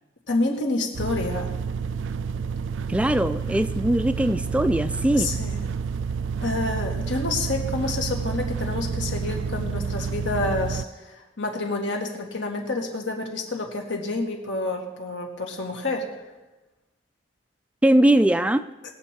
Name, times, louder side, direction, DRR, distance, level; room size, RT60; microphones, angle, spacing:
voice 1, 0.3-1.5 5.1-5.6 6.4-16.1, left 2 dB, 85° left, 1 dB, 2.0 m, -28 dB
sound 1, 0.9-10.8, right 5 dB, 85° right, 0.3 m, -29 dB
voice 2, 2.9-5.3 17.8-18.6, right 1 dB, 5° right, 11 dB, 0.3 m, -20 dB
20.5 x 7.3 x 4.5 m, 1.1 s
head